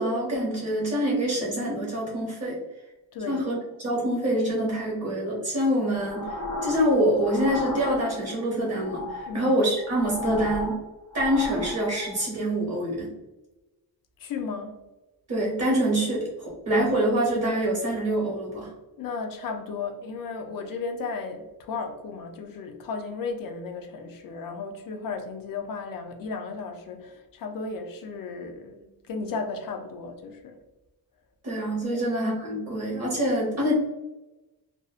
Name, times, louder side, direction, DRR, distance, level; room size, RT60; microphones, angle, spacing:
voice 1, 0.0-2.6 3.3-10.8 11.1-13.1 15.3-18.7 31.4-33.7, right 1 dB, 40° right, -4 dB, 0.8 m, -25 dB
voice 2, 3.1-3.5 9.3-9.5 14.2-14.8 19.0-30.6 31.9-32.0, left 4 dB, 60° left, 6 dB, 0.5 m, -35 dB
sound 1, 5.8-8.4 8.7-12.3, left 2 dB, 10° left, 0.5 m, -35 dB
2.6 x 2.0 x 2.3 m, 1.0 s
wide cardioid pair, 175°, 39 cm